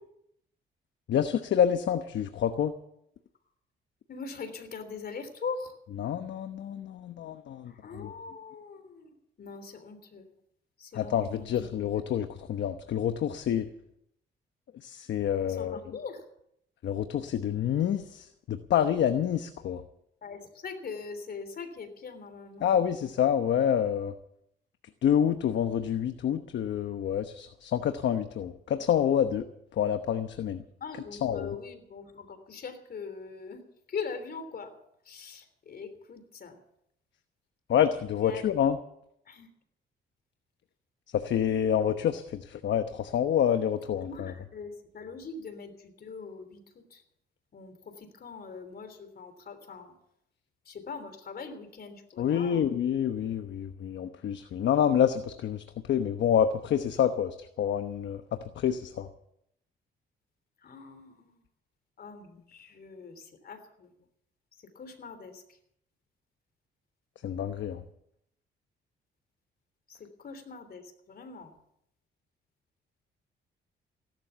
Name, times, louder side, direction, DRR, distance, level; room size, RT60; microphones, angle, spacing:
voice 1, 1.1-2.7 6.0-8.1 10.9-13.7 14.8-15.8 16.8-19.8 22.6-24.1 25.0-29.5 29.8-30.6 31.2-31.5 37.7-38.8 41.1-44.3 52.2-59.1 67.2-67.8, left 9 dB, 65° left, 9 dB, 1.0 m, -27 dB
voice 2, 4.1-5.7 7.7-10.3 10.8-11.7 15.5-16.3 20.2-22.7 30.8-33.6 33.9-34.7 35.0-36.6 38.2-38.4 39.3-39.5 44.0-47.0 47.5-49.9 50.6-52.7 60.6-61.4 62.0-63.9 64.6-65.6 69.9-71.5, left 5 dB, 50° left, 9 dB, 3.3 m, -42 dB
16.5 x 12.0 x 7.1 m, 0.76 s
cardioid pair, 90°, 20 cm